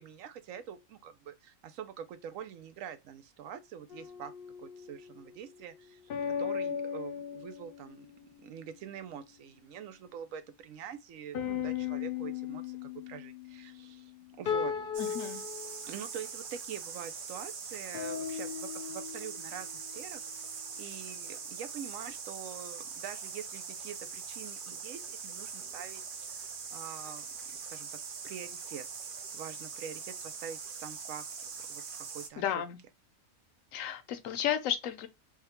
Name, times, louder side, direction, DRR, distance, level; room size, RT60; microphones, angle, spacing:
voice 1, 0.0-4.3 4.6-6.1 6.4-8.1 8.4-14.1 14.4-14.7 15.9-20.2 20.8-28.9 29.3-31.2 31.7-32.4, right 8 dB, 90° right, 1.0 m, -45 dB
sound 1, 3.9-5.2 6.1-8.2 11.3-15.8 17.9-19.8, left 8 dB, 60° left, 0.6 m, -37 dB
sound 2, 14.9-32.3, right 6 dB, 55° right, 0.6 m, -42 dB
voice 2, 15.0-15.4 32.4-32.8 33.7-35.1, left 10 dB, 80° left, 1.0 m, -33 dB
3.5 x 2.2 x 4.2 m
omnidirectional pair, 1.3 m